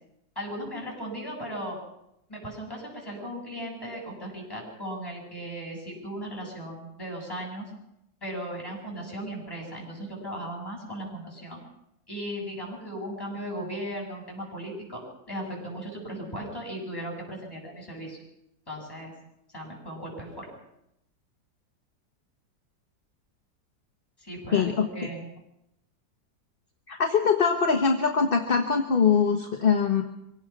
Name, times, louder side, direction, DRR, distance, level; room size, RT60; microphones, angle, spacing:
voice 1, 0.3-1.8 2.3-7.7 8.2-11.6 12.1-18.2 18.7-19.1 19.5-20.5 24.2-25.3, equal, 10° left, -3 dB, 8.1 m, -37 dB
voice 2, 24.5-24.9 26.9-30.0, left 6 dB, 35° left, 3 dB, 1.2 m, -22 dB
24.5 x 17.5 x 6.0 m, 0.83 s
omnidirectional pair, 2.0 m